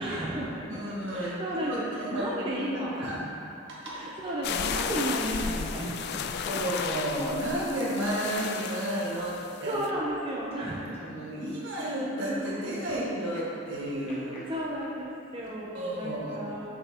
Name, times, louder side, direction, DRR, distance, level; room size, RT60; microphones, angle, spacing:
voice 1, 0.0-0.6 1.1-3.2 3.9-6.2 6.6-6.7 9.7-11.0 14.5-16.7, right 1 dB, 25° right, -5 dB, 0.6 m, -33 dB
voice 2, 0.7-1.3 1.6-2.6 3.0-3.2 3.8-4.0 6.5-9.8 11.1-14.4 15.7-16.4, right 1 dB, 70° right, -6 dB, 1.5 m, -32 dB
sound 1, 1.1-1.2 1.5-1.6 2.5-2.6 2.9-3.0 4.0-5.9 6.5-6.8 7.1-9.6 9.8-10.0 10.3-10.6 10.9-11.3 11.7-15.6, equal, 30° left, 1.3 m, -48 dB
sound 2, 4.4-9.9, left 6 dB, 55° left, 0.3 m, -34 dB
6.8 x 6.3 x 2.9 m, 2.6 s
head